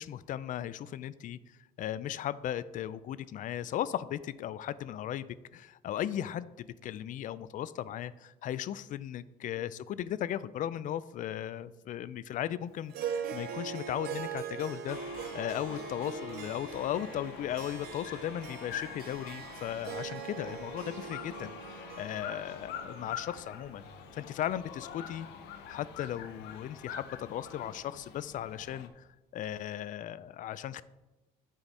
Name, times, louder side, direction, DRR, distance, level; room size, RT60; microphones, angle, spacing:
voice 1, 0.0-15.0 15.3-23.8 24.1-25.3 25.6-29.1 29.3-30.8, left 11 dB, 50° left, 17 dB, 0.4 m, -37 dB
Harp, 12.9-25.5, right 7 dB, 65° right, 0.7 m, -42 dB
sound 1, 14.9-28.9, left 8 dB, 85° left, 0.7 m, -45 dB
9.9 x 4.6 x 4.1 m, 1.1 s
cardioid pair, 110°, 17 cm